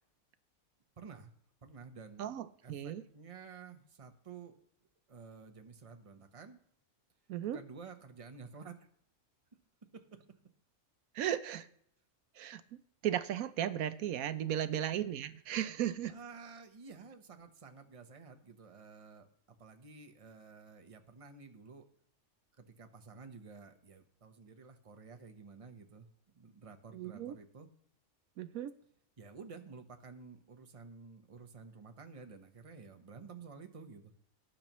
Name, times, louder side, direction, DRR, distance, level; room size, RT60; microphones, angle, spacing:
voice 1, 1.0-1.3 1.6-2.3 2.6-4.5 5.1-6.6 7.5-8.9 10.1-10.2 16.1-19.3 19.6-21.9 22.6-26.1 26.3-27.7 29.2-34.1, right 5 dB, 25° right, 6 dB, 1.0 m, -52 dB
voice 2, 2.2-3.0 7.3-7.6 11.1-11.7 12.4-12.6 13.0-16.2 26.9-27.4 28.4-28.7, right 11 dB, 80° right, 12 dB, 1.1 m, -35 dB
18.0 x 8.6 x 3.1 m, 0.69 s
omnidirectional pair, 1.5 m